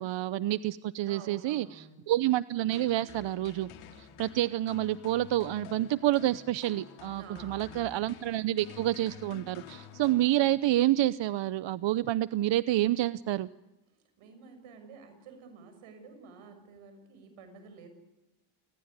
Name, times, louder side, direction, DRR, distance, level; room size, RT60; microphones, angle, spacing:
voice 1, 0.0-3.7 4.0-13.5, right 14 dB, 65° right, 16 dB, 0.8 m, -28 dB
voice 2, 1.0-2.1 7.1-7.8 13.9-17.9, right 5 dB, 85° right, 8 dB, 6.7 m, -51 dB
sound 1, 2.7-10.9, left 8 dB, 80° left, 3.2 m, -50 dB
28.5 x 18.5 x 9.7 m, 1.0 s
cardioid pair, 75°, 48 cm